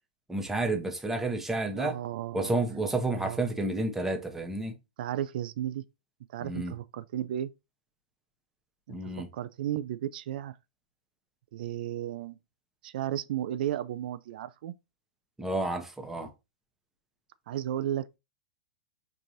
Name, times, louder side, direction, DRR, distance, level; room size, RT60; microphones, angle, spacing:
voice 1, 0.3-2.0 2.3-4.8 6.4-6.7 8.9-9.3 15.4-16.3, right 2 dB, 5° right, 0.7 m, -30 dB
voice 2, 1.7-2.6 3.1-3.4 5.0-5.8 6.3-7.5 8.9-10.6 11.5-12.4 12.8-14.7 17.5-18.2, right 11 dB, 65° right, 0.4 m, -34 dB
4.7 x 2.5 x 2.7 m
hypercardioid pair, 120°, 5 cm